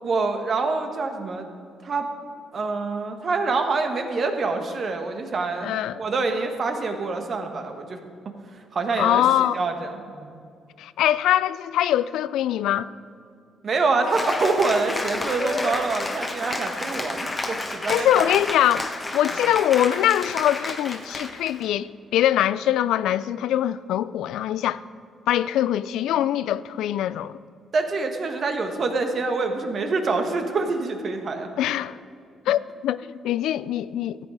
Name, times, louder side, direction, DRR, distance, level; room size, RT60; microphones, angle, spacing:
voice 1, 0.0-1.4 1.8-2.1 2.5-5.7 6.0-8.0 8.7-9.2 9.5-10.3 13.6-18.3 27.7-31.5, right 3 dB, 50° right, 1.4 m, -26 dB
voice 2, 5.6-6.0 9.0-9.6 10.8-12.9 17.9-24.8 25.3-27.4 31.6-32.0 32.5-34.3, left 12 dB, 85° left, 0.3 m, -23 dB
Cheering / Applause, 14.1-21.6, left 2 dB, 20° left, 1.2 m, -30 dB
13.5 x 8.4 x 5.0 m
cardioid pair, 90°, 0 cm